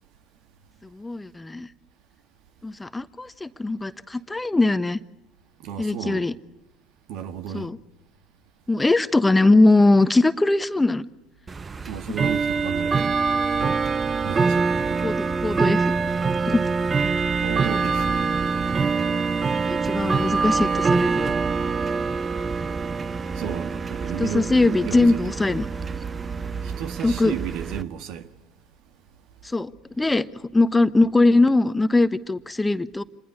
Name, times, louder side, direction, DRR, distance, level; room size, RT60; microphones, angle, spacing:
voice 1, 0.9-1.7 2.6-5.0 5.8-6.3 7.5-7.8 8.7-11.1 12.1-12.2 15.0-15.9 16.4-16.6 19.6-21.3 24.2-25.7 27.0-27.3 29.4-29.7 30.0-30.3 30.5-33.0, left 2 dB, 15° left, 1.1 m, -21 dB
voice 2, 5.6-6.3 7.1-7.7 11.9-13.3 13.6-14.0 14.2-15.0 17.3-18.2 23.3-25.6 26.6-28.3, right 9 dB, 65° right, 1.7 m, -33 dB
Bell / Tick-tock, 11.5-27.8, right 4 dB, 30° right, 0.9 m, -25 dB
27.0 x 21.0 x 8.5 m
hypercardioid pair, 65°, 0 cm